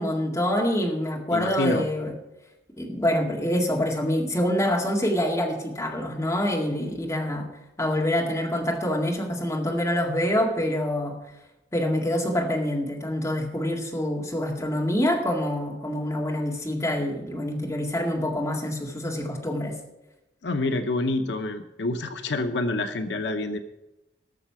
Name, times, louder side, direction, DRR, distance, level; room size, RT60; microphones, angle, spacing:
voice 1, 0.0-2.1 2.8-7.5 7.8-11.1 11.7-19.8, left 1 dB, 15° left, -1 dB, 2.0 m, -26 dB
voice 2, 1.3-1.9 20.4-23.6, left 2 dB, 80° left, 7 dB, 0.8 m, -27 dB
17.5 x 6.7 x 5.8 m, 0.97 s
head